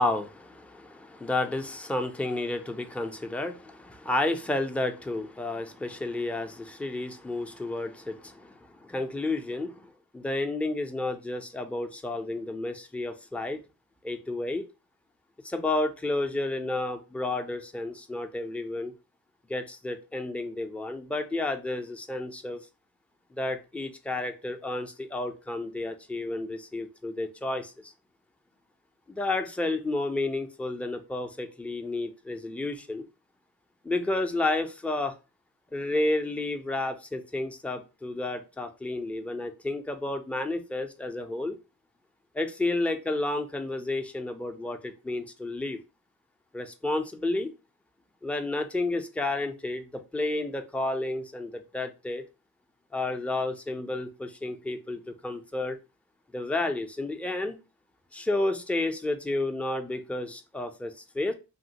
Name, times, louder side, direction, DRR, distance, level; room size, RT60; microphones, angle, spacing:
voice 1, 0.0-13.6 14.0-14.6 15.4-18.9 19.5-22.7 23.3-27.9 29.1-33.0 33.8-35.1 35.7-41.6 42.3-45.8 46.5-47.5 48.2-52.2 52.9-55.8 56.3-57.6 58.1-61.3, left 2 dB, 5° left, 0.3 m, -31 dB
3.0 x 2.4 x 2.8 m
cardioid pair, 100°, 36 cm